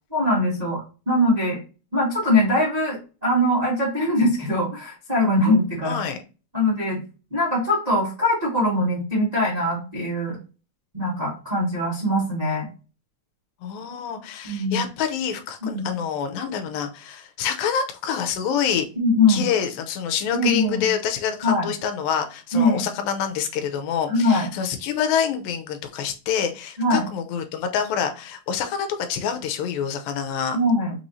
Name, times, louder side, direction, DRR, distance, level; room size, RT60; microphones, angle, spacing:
voice 1, 0.1-1.6 1.9-6.0 6.5-7.0 7.3-10.4 10.9-12.7 14.4-14.8 15.7-16.0 18.9-19.5 20.3-20.9 21.4-21.7 22.5-22.8 24.1-24.5 26.8-27.1 30.5-30.9, left 1 dB, 35° right, -5 dB, 0.6 m, -22 dB
voice 2, 5.8-6.2 13.6-18.9 19.3-30.6, left 8 dB, 80° left, 7 dB, 2.5 m, -27 dB
5.9 x 3.0 x 2.7 m, 0.33 s
omnidirectional pair, 4.1 m